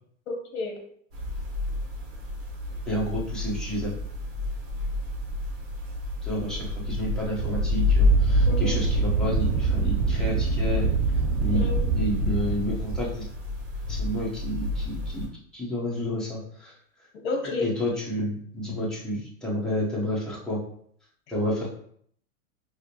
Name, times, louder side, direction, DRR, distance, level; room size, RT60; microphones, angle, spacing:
voice 1, 0.3-0.8 8.5-8.8 11.5-11.9 17.2-17.6, left 3 dB, 60° left, 3 dB, 0.8 m, -31 dB
sound 1, 1.1-15.3, equal, 35° right, 0.9 m, -29 dB
voice 2, 2.9-3.9 6.2-10.9 11.4-11.6 11.9-13.2 13.9-15.3 15.5-16.7 17.6-20.6 21.3-21.7, equal, ahead, -6 dB, 0.8 m, -30 dB
Wind, 6.6-13.0, right 3 dB, 60° right, 0.7 m, -26 dB
4.8 x 2.0 x 2.8 m, 0.63 s
hypercardioid pair, 135°, 39 cm